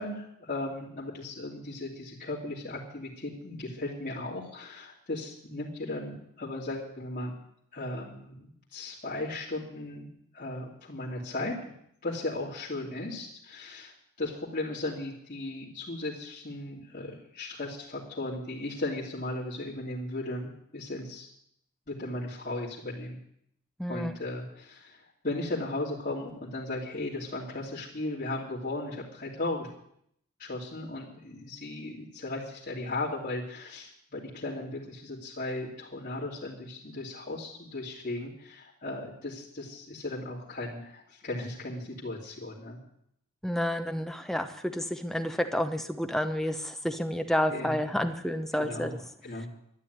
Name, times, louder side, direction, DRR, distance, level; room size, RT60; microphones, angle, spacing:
voice 1, 0.0-7.3 7.7-10.1 10.3-11.7 12.0-13.9 14.2-21.3 21.9-23.2 23.9-25.0 25.2-29.7 30.4-42.8 47.5-47.8 48.6-48.9 49.2-49.5, left 2 dB, 40° left, -7 dB, 3.0 m, -36 dB
voice 2, 23.8-24.1 43.4-48.9, equal, ahead, 6 dB, 0.9 m, -30 dB
12.5 x 10.5 x 9.6 m, 0.71 s
head